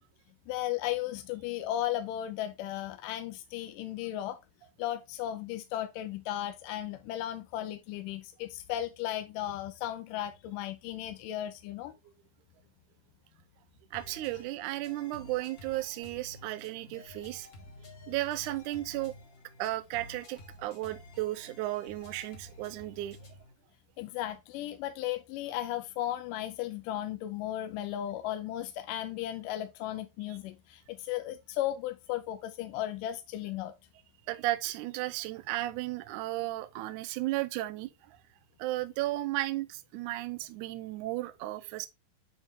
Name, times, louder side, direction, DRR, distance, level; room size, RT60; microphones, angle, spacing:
voice 1, 0.5-4.4 4.8-11.9 24.0-33.7, left 13 dB, 80° left, 2.1 m, -35 dB
sound 1, 13.9-23.5, left 1 dB, 55° left, 1.0 m, -52 dB
voice 2, 13.9-17.5 18.1-19.2 19.6-23.2 34.3-38.2 38.6-41.9, right 17 dB, 80° right, 1.8 m, -34 dB
8.8 x 3.7 x 3.3 m
omnidirectional pair, 4.1 m